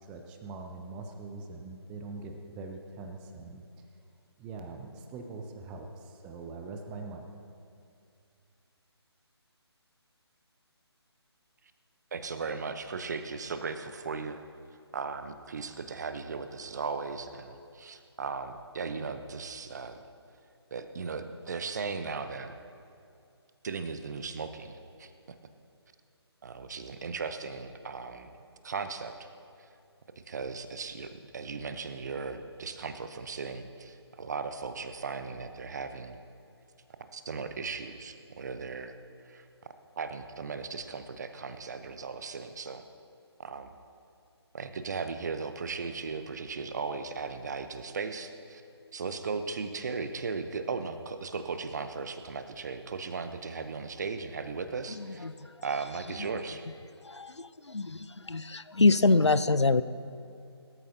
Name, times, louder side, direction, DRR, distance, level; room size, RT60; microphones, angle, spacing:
voice 1, 0.0-3.6 4.4-7.3, right 3 dB, 5° right, 4 dB, 0.4 m, -42 dB
voice 2, 12.1-14.4 14.9-20.0 20.7-22.5 23.6-25.1 26.4-28.3 28.6-29.1 30.3-36.2 37.1-38.9 39.3-39.4 40.0-42.8 43.4-43.7 44.5-48.6 48.9-55.3 55.6-56.6, right 4 dB, 40° right, 9 dB, 0.9 m, -37 dB
voice 3, 54.9-55.5 56.2-56.3 57.0-59.8, left 3 dB, 85° left, 14 dB, 0.6 m, -26 dB
23.5 x 13.5 x 2.8 m, 2.5 s
figure-of-eight pair, 150°, 14 cm